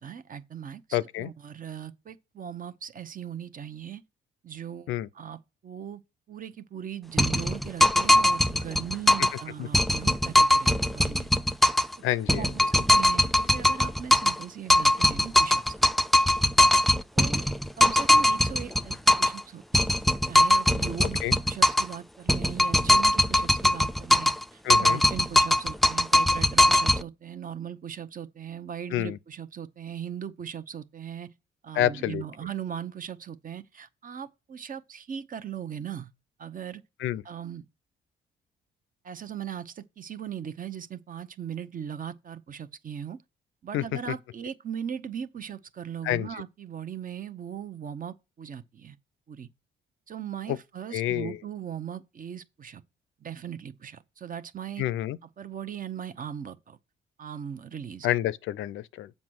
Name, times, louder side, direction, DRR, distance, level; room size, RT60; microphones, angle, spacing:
voice 1, 0.0-4.0 4.4-6.0 6.3-11.3 12.3-15.6 16.7-16.9 17.2-17.4 17.8-19.9 20.3-31.3 31.6-36.1 36.4-36.8 37.2-37.6 39.0-43.2 43.6-49.0 49.3-49.5 50.1-52.8 53.2-54.8 55.4-56.8 57.2-58.1, right 8 dB, 45° right, 0.8 m, -39 dB
voice 2, 0.9-1.3 4.9-5.1 9.6-9.7 12.0-12.7 21.0-21.4 24.6-25.0 28.9-29.2 31.7-32.2 37.0-37.2 43.7-43.8 46.0-46.4 50.5-50.6 50.9-51.4 54.8-55.2 58.0-59.1, left 13 dB, 85° left, 0.5 m, -28 dB
sound 1, 7.2-9.4 9.7-12.0 12.3-14.4 14.7-19.4 19.7-22.0 22.3-24.4 24.7-27.0, left 1 dB, ahead, 0.4 m, -21 dB
7.3 x 5.4 x 6.2 m
cardioid pair, 90°, 20 cm